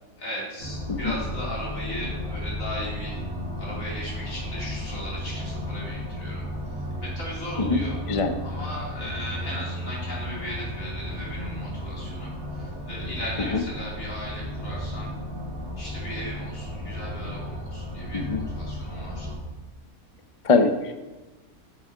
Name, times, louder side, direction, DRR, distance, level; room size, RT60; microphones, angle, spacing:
voice 1, 0.2-3.2 3.6-6.4 7.0-8.0 8.4-15.1 15.8-19.3, equal, 60° left, -5 dB, 3.9 m, -37 dB
sound 1, 0.6-19.4, equal, 70° right, 3.1 m, -34 dB
voice 2, 20.4-20.9, left 4 dB, 40° left, 7 dB, 0.5 m, -22 dB
9.1 x 7.4 x 5.0 m, 1.2 s
omnidirectional pair, 1.6 m